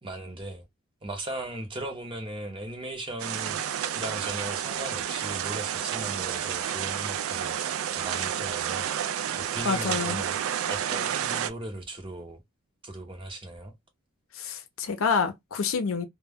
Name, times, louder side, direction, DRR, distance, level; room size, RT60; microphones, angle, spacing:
voice 1, 0.0-0.7 1.0-10.4 10.7-12.4 12.8-13.7, right 1 dB, 25° right, 0.7 m, -38 dB
sound 1, 3.2-11.5, right 9 dB, 75° right, 0.3 m, -30 dB
voice 2, 9.6-10.2 14.4-16.1, left 5 dB, 75° left, 0.5 m, -28 dB
2.2 x 2.2 x 3.3 m
head